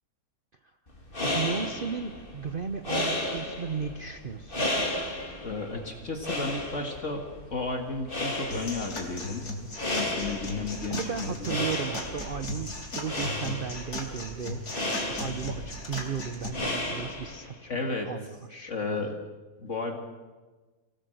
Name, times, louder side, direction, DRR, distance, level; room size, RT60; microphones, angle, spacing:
sound 1, 0.9-17.6, left 1 dB, 35° left, 3.1 m, -34 dB
voice 1, 1.2-4.7 10.9-19.1, right 6 dB, 45° right, 9 dB, 0.9 m, -35 dB
voice 2, 5.4-7.2 7.5-9.5 9.9-11.3 17.7-18.1 18.7-19.2 19.6-20.0, left 3 dB, 50° left, 3 dB, 2.3 m, -33 dB
sound 2, 8.5-16.5, left 2 dB, 85° left, 4.2 m, -37 dB
24.5 x 17.0 x 7.9 m, 1.3 s
omnidirectional pair, 1.6 m